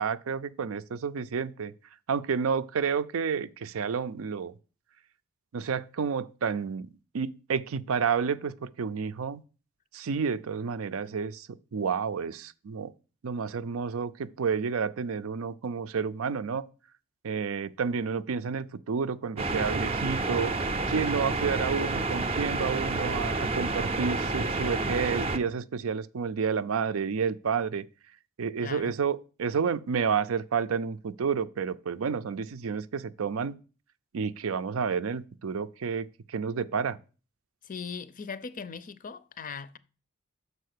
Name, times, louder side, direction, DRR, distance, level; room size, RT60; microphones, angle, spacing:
voice 1, 0.0-1.7 2.1-4.5 5.5-6.9 7.1-9.4 9.9-12.9 13.2-16.7 17.2-20.5 20.9-27.8 28.4-33.5 34.1-37.0, right 6 dB, 75° right, 0.5 m, -30 dB
sound 1, 19.4-25.4, right 3 dB, 30° right, 0.5 m, -29 dB
voice 2, 28.6-29.0 37.6-39.8, left 5 dB, 40° left, 0.5 m, -39 dB
6.6 x 4.8 x 6.5 m
head